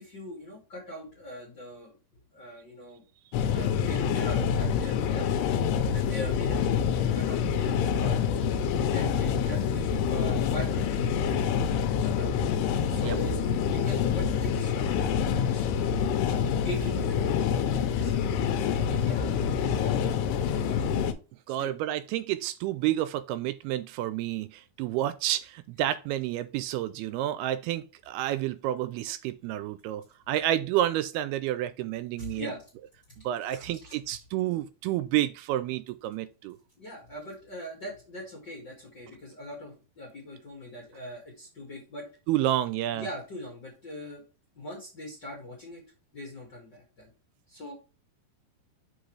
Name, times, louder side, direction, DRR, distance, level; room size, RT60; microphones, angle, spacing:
voice 1, 0.0-2.0 2.3-3.0 3.5-5.4 5.9-8.2 8.9-11.6 12.0-12.5 12.9-15.8 16.6-20.1 20.4-20.9 21.6-21.7 32.2-32.6 33.8-33.9 36.8-42.1 42.9-44.2 44.5-45.8 46.1-47.1 47.5-47.7, left 1 dB, 40° left, 1.6 m, -42 dB
sound 1, 3.3-21.1, left 7 dB, 85° left, 2.9 m, -26 dB
voice 2, 21.5-32.5 33.2-36.6 42.3-43.1, right 13 dB, 80° right, 2.4 m, -30 dB
6.3 x 5.3 x 3.2 m
omnidirectional pair, 4.7 m